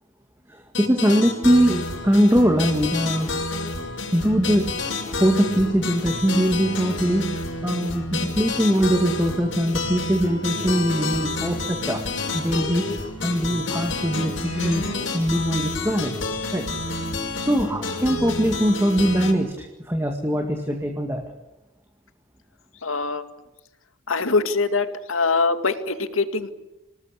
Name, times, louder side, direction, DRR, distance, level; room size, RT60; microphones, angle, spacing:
voice 1, 0.5-3.3 4.1-4.8 5.1-12.1 12.3-16.1 16.5-16.7 17.4-21.2, equal, 10° right, 3 dB, 2.0 m, -22 dB
sound 1, 0.7-19.3, left 2 dB, 65° left, 5.5 m, -29 dB
voice 2, 22.8-23.2 24.1-26.6, left 4 dB, 85° left, 9 dB, 2.2 m, -23 dB
27.5 x 19.0 x 8.4 m, 1.0 s
head